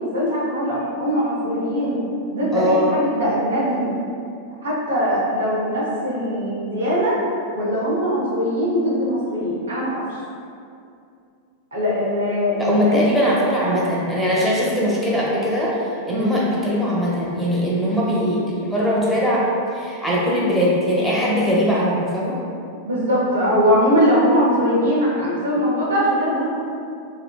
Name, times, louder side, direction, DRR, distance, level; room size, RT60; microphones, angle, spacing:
voice 1, 0.0-2.0 2.3-3.9 4.6-7.2 7.5-10.0 11.7-13.0 16.1-16.4 22.9-26.5, equal, 80° right, -7 dB, 0.5 m, -21 dB
voice 2, 2.5-2.9 12.6-19.5 19.7-22.4, equal, ahead, -6 dB, 0.6 m, -20 dB
2.6 x 2.1 x 2.2 m, 2.4 s
hypercardioid pair, 95°, 0 cm